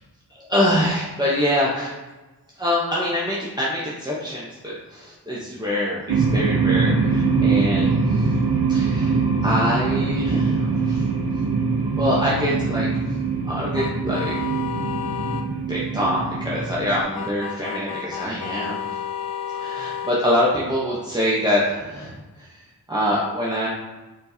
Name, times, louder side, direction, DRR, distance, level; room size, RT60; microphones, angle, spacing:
voice 1, 0.4-1.9 2.6-8.3 8.7-11.1 12.0-12.9 13.5-14.4 15.7-18.9 19.6-22.1 22.4-22.6 22.9-23.7, left 1 dB, 10° right, -7 dB, 0.8 m, -24 dB
sound 1, 6.1-17.0, right 4 dB, 80° right, 0.8 m, -22 dB
sound 2, 13.7-15.5 17.1-20.2, left 9 dB, 80° left, 0.5 m, -31 dB
4.4 x 4.3 x 2.7 m, 1.1 s
wide cardioid pair, 85°, 38 cm